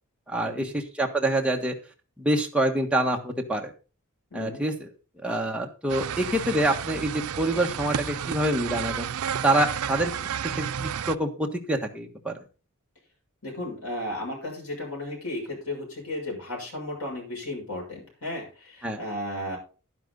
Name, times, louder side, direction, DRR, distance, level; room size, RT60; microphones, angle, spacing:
voice 1, 0.3-1.7 2.2-3.7 4.3-4.9 5.2-9.1 9.4-10.1 10.4-12.3 18.8-19.0, right 1 dB, 5° right, 1 dB, 1.4 m, -26 dB
voice 2, 4.3-4.6 13.4-19.6, left 1 dB, 75° left, -1 dB, 6.5 m, -34 dB
sound 1, 5.9-11.2, right 8 dB, 80° right, 0.5 m, -31 dB
11.0 x 10.5 x 4.0 m, 0.34 s
head